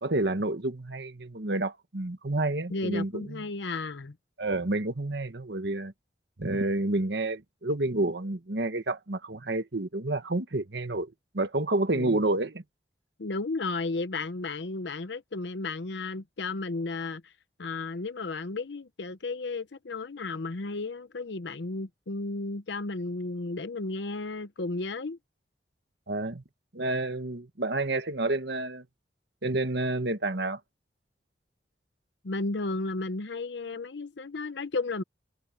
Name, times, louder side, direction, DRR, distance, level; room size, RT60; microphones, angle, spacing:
voice 1, 0.0-3.4 4.4-5.9 6.4-12.6 26.1-26.4 26.7-28.8 29.4-30.6, right 2 dB, 70° right, 1.4 m, -29 dB
voice 2, 2.7-4.1 11.9-12.2 13.2-17.3 17.6-25.2 32.2-35.0, left 3 dB, 75° left, 0.8 m, -33 dB
head